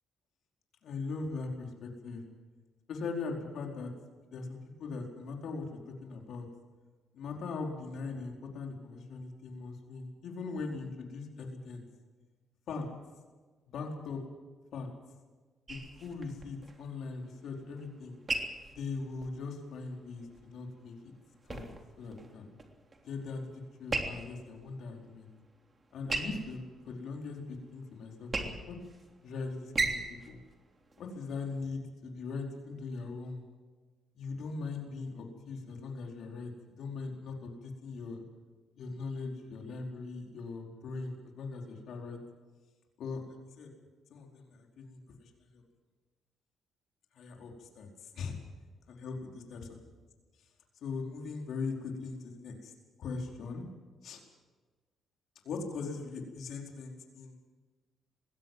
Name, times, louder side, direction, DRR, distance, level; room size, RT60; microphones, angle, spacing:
voice 1, 0.8-2.2 2.9-3.9 4.3-6.5 7.1-11.9 12.7-12.9 13.7-14.2 14.7-14.9 15.7-18.2 18.7-21.1 21.4-21.7 22.0-22.5 23.0-25.3 25.9-28.8 29.2-30.4 31.0-33.5 34.1-36.5 36.8-38.2 38.8-42.2 43.0-43.7 44.1-45.6 47.1-48.4 48.9-49.6 50.8-52.7 53.0-53.6 54.0-54.2 55.4-57.5, left 4 dB, 70° left, 1 dB, 4.6 m, -40 dB
sound 1, 15.7-31.7, right 3 dB, 30° right, 3.2 m, -40 dB
21.0 x 17.0 x 7.6 m, 1.3 s
cardioid pair, 90°, 0 cm